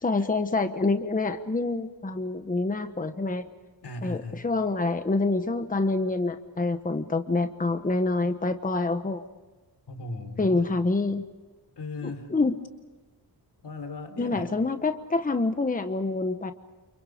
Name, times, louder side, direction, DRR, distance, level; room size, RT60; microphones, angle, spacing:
voice 1, 0.0-3.4 4.0-9.2 10.4-11.2 12.0-12.6 14.2-16.5, left 3 dB, 20° left, 8 dB, 1.2 m, -26 dB
voice 2, 3.8-4.4 9.9-10.6 11.8-12.3 13.6-14.5, left 2 dB, 80° left, 7 dB, 4.1 m, -37 dB
29.5 x 29.5 x 5.1 m, 1.2 s
wide cardioid pair, 155°, 40 cm